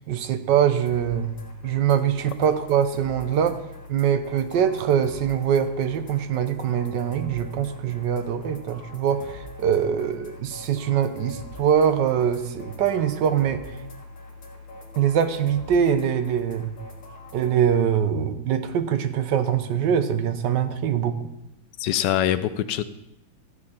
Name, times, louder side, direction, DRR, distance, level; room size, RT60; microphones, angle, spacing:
voice 1, 0.0-1.4 1.6-3.6 3.9-13.6 15.0-16.7 17.3-21.3, right 8 dB, 70° right, 10 dB, 1.3 m, -23 dB
sound 1, 0.9-17.6, left 2 dB, 45° left, 2.1 m, -43 dB
voice 2, 21.8-22.8, left 11 dB, 75° left, 12 dB, 1.1 m, -23 dB
14.0 x 7.3 x 4.3 m, 0.86 s
omnidirectional pair, 2.2 m